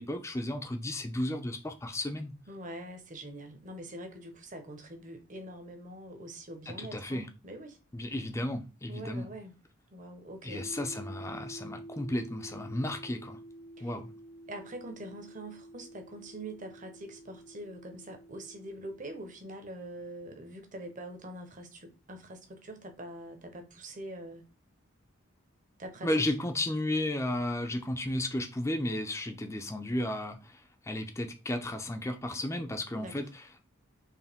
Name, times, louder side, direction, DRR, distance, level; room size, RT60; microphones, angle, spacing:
voice 1, 0.0-2.3 6.7-7.3 7.9-9.3 10.4-13.4 13.8-14.1 26.0-33.6, left 1 dB, 15° left, 0.5 m, -33 dB
voice 2, 2.5-7.8 8.9-9.6 9.9-10.7 13.8-13.9 14.5-24.4 25.8-26.1 33.0-33.3, right 1 dB, 40° right, 1.0 m, -44 dB
sound 1, 10.5-19.4, right 1 dB, 65° left, 0.8 m, -49 dB
4.6 x 3.2 x 3.5 m
head